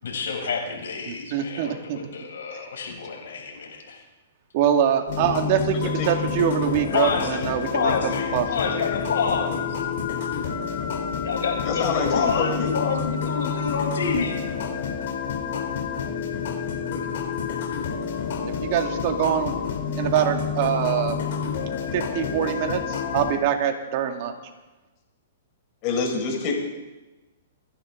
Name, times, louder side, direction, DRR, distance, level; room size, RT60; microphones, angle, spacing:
voice 1, 0.0-4.0 6.9-7.5 7.7-9.8 11.2-14.4, left 5 dB, 80° left, 0 dB, 6.0 m, -28 dB
voice 2, 1.1-2.0 4.5-8.0 8.3-8.5 18.4-19.5 20.0-21.2 21.9-24.3, right 9 dB, 45° right, 4 dB, 2.1 m, -24 dB
sound 1, 5.1-23.4, left 6 dB, 65° left, 3.2 m, -29 dB
voice 3, 11.6-12.7 25.8-26.5, left 5 dB, 40° left, 0 dB, 5.5 m, -26 dB
28.5 x 11.0 x 3.8 m, 1.1 s
hypercardioid pair, 140°, 0 cm